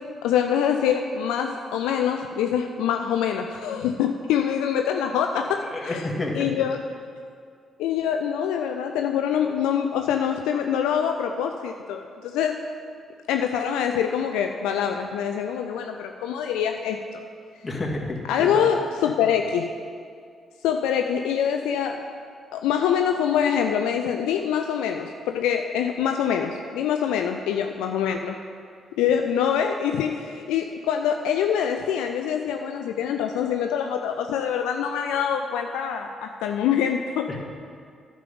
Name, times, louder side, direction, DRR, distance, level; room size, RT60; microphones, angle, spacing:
voice 1, 0.2-6.0 6.3-6.8 7.8-12.6 13.3-17.2 18.3-19.7 20.6-22.0 22.5-28.4 29.0-37.3, left 8 dB, 80° left, 4 dB, 0.4 m, -25 dB
voice 2, 5.7-6.6 17.6-18.6 37.3-37.4, left 2 dB, 30° left, -1 dB, 2.0 m, -30 dB
10.5 x 5.3 x 6.9 m, 2.2 s
hypercardioid pair, 45°, 0 cm